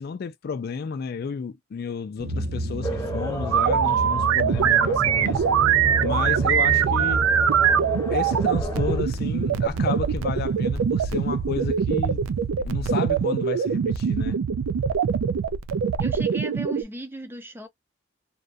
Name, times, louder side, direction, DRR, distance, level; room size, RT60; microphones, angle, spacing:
voice 1, 0.0-5.4 6.0-7.2 8.1-12.3 12.6-14.4, left 5 dB, 50° left, 0.3 m, -32 dB
sound 1, 2.2-12.5, right 1 dB, 50° right, 0.6 m, -32 dB
sound 2, 2.8-9.0, equal, 15° left, 0.9 m, -35 dB
sound 3, 3.5-16.8, right 7 dB, 90° right, 0.3 m, -23 dB
voice 2, 16.0-17.7, right 2 dB, 10° right, 0.6 m, -36 dB
2.4 x 2.1 x 2.4 m
head